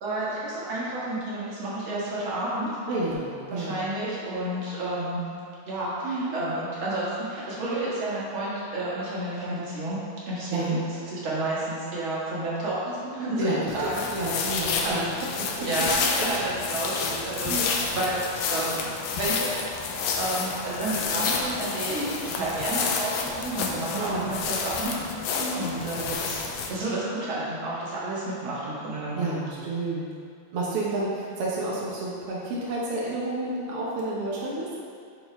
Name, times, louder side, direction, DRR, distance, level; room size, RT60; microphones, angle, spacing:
voice 1, 0.0-2.7 3.5-5.2 5.7-10.0 10.3-10.8 11.1-14.0 14.8-15.0 15.4-18.3 18.5-18.8 19.1-19.5 20.2-24.9 25.5-29.3, right 1 dB, 45° right, -8 dB, 2.1 m, -30 dB
voice 2, 2.9-3.8 6.0-6.4 10.5-10.8 13.4-15.1 15.6-15.7 17.5-17.6 21.9-22.2 24.0-24.3 25.3-25.7 29.1-30.1 30.5-34.7, right 2 dB, 80° right, -5 dB, 1.3 m, -30 dB
sound 1, 13.7-26.7, left 5 dB, 80° left, 2.1 m, -29 dB
11.0 x 4.3 x 3.5 m, 2.3 s
omnidirectional pair, 3.9 m